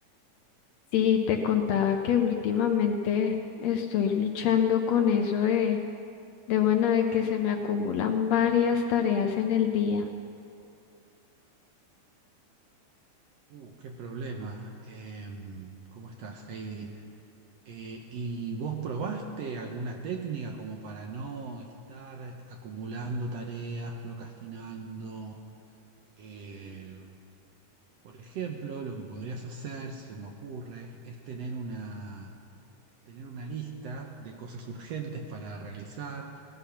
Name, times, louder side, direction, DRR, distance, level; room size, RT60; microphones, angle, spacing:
voice 1, 0.9-5.8 6.5-10.1, left 8 dB, 75° left, 4 dB, 1.7 m, -25 dB
voice 2, 13.5-17.0 17.6-25.4 26.2-27.1 28.0-32.3 33.0-36.4, right 4 dB, 70° right, 3 dB, 1.7 m, -38 dB
17.5 x 11.5 x 5.8 m, 2.5 s
omnidirectional pair, 3.6 m